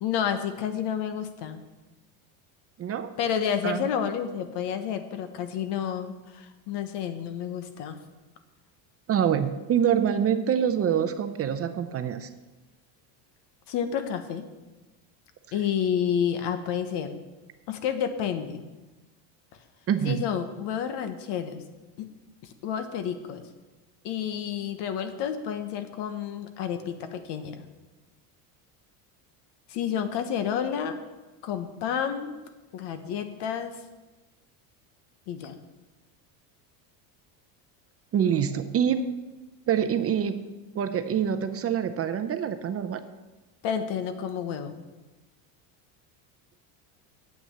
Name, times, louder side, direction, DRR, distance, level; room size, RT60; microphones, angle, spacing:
voice 1, 0.0-1.6 3.2-8.0 13.7-14.5 15.5-17.1 17.7-18.6 20.0-21.6 22.0-22.1 22.4-23.4 24.0-27.7 29.7-31.0 31.4-32.3 32.7-33.7 35.3-35.6 43.6-44.8, left 8 dB, 60° left, 9 dB, 1.3 m, -30 dB
voice 2, 2.8-3.1 3.6-3.8 9.1-12.3 19.9-20.3 38.1-39.1 39.7-40.5 40.7-43.0, right 8 dB, 30° right, 9 dB, 0.6 m, -25 dB
9.1 x 8.0 x 6.8 m, 1.2 s
supercardioid pair, 120°, 46 cm